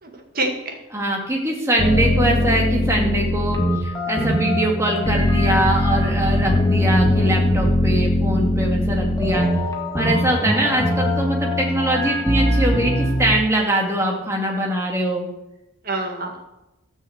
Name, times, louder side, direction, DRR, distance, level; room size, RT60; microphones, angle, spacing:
voice 1, 0.0-0.8 7.2-7.4 15.8-16.4, right 2 dB, 45° right, 2 dB, 2.1 m, -27 dB
voice 2, 0.9-9.5 9.9-15.3, right 1 dB, 15° right, -1 dB, 2.4 m, -22 dB
sound 1, 1.8-13.3, left 1 dB, 20° left, 1.7 m, -21 dB
13.5 x 6.5 x 8.0 m, 0.93 s
head